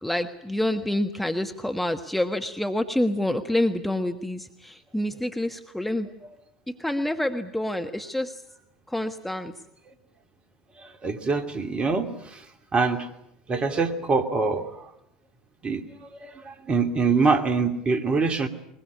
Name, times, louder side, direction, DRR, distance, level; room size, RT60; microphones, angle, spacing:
voice 1, 0.0-6.1 6.7-8.4 8.9-9.5, left 1 dB, 5° left, 6 dB, 1.4 m, -27 dB
voice 2, 11.0-12.1 12.7-13.0 13.5-14.6 15.6-15.8 16.4-18.5, right 4 dB, 30° right, 8 dB, 2.8 m, -23 dB
22.0 x 21.5 x 9.6 m, 0.78 s
figure-of-eight pair, 80°, 4 cm